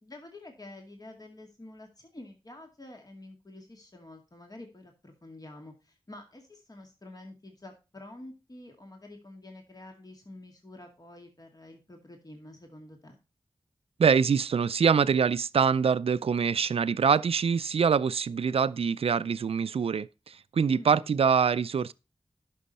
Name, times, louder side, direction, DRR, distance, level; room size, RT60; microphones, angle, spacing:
voice 1, 0.0-13.2 20.7-21.1, left 1 dB, 40° left, 2.2 m, -48 dB
voice 2, 14.0-21.9, right 6 dB, 80° right, 0.4 m, -24 dB
11.0 x 6.3 x 4.1 m
wide cardioid pair, 50°, 10 cm